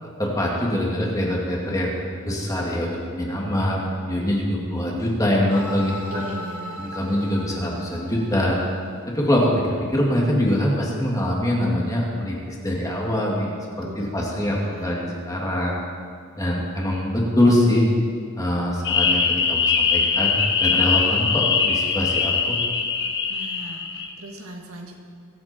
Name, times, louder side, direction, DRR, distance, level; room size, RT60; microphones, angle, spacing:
voice 1, 0.0-6.2 6.8-8.6 9.1-15.8 16.4-17.9 18.4-22.6, left 1 dB, 15° left, -3 dB, 2.4 m, -24 dB
sound 1, 5.5-9.5, left 1 dB, 85° left, 2.5 m, -38 dB
voice 2, 6.1-7.0 13.8-15.0 23.3-25.0, right 1 dB, 80° right, 1 dB, 2.0 m, -39 dB
sound 2, 18.8-24.1, left 5 dB, 55° left, 1.4 m, -22 dB
22.5 x 8.7 x 4.5 m, 2.1 s
head